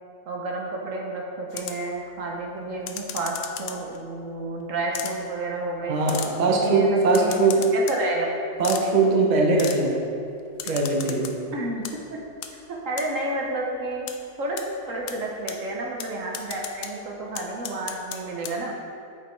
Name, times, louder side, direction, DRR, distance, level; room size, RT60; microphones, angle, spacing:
voice 1, 0.3-6.0 6.5-8.3 11.5-11.8 12.1-12.2 12.7-14.1 14.4-14.6 14.8-18.7, right 2 dB, 60° right, -1 dB, 1.1 m, -30 dB
sound 1, 1.5-1.9 2.9-4.0 4.9-5.1 6.1-6.3 7.1-8.0 8.6-8.8 9.6-9.8 10.6-11.3 11.7-11.9 12.4-12.5 13.0-13.1 14.1-14.2 14.6-14.7 15.1-15.2 15.5-15.6 16.0-16.1 16.3-16.9 17.3-18.2 18.4-18.5, left 9 dB, 80° left, 1.1 m, -34 dB
voice 2, 5.8-7.7 8.6-9.9 10.6-11.3, right 3 dB, 40° right, -1 dB, 0.6 m, -21 dB
6.6 x 5.2 x 4.4 m, 2.6 s
omnidirectional pair, 1.8 m